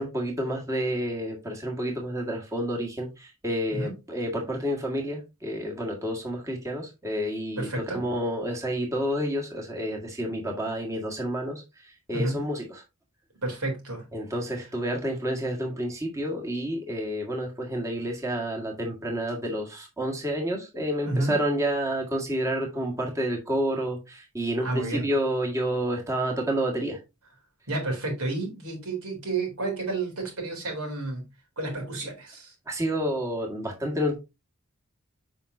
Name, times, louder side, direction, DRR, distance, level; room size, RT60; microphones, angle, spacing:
voice 1, 0.0-12.8 14.1-27.0 32.7-34.2, equal, 15° right, 1.6 m, -29 dB
voice 2, 7.6-8.0 12.1-12.4 13.4-14.0 21.0-21.3 24.6-25.1 27.7-31.2 31.6-32.5, right 2 dB, 80° right, 3.5 m, -30 dB
7.3 x 5.5 x 2.6 m
head